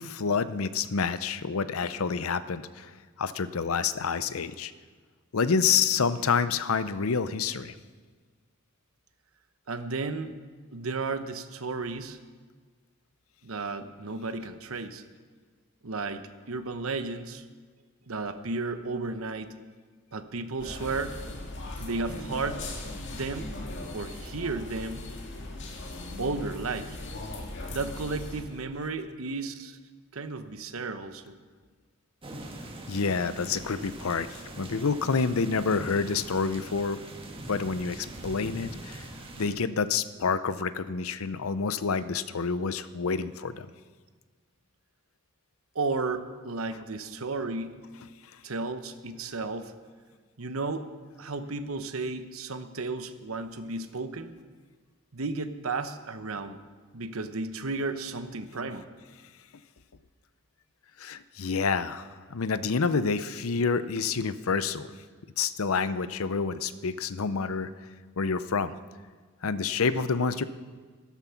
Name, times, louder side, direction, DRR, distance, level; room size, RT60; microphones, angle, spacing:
voice 1, 0.0-2.9 3.2-4.7 5.3-7.7 32.9-37.0 37.5-39.1 39.4-43.7 61.0-64.9 65.4-67.7 68.2-68.7 69.4-70.4, left 5 dB, 80° left, 14 dB, 0.7 m, -28 dB
voice 2, 9.7-10.3 10.7-12.2 13.4-15.0 15.8-17.4 18.1-19.5 20.1-21.2 21.8-22.6 23.1-23.5 23.9-25.0 26.2-27.0 27.7-29.8 30.1-31.4 45.7-47.8 48.4-49.7 50.4-50.9 51.2-54.4 55.1-56.6 56.9-58.9, right 3 dB, 75° right, 10 dB, 1.0 m, -33 dB
sound 1, 20.6-28.4, left 2 dB, 60° left, 2.0 m, -39 dB
sound 2, 32.2-39.5, right 1 dB, 25° right, 1.6 m, -42 dB
13.0 x 13.0 x 5.8 m, 1.6 s
head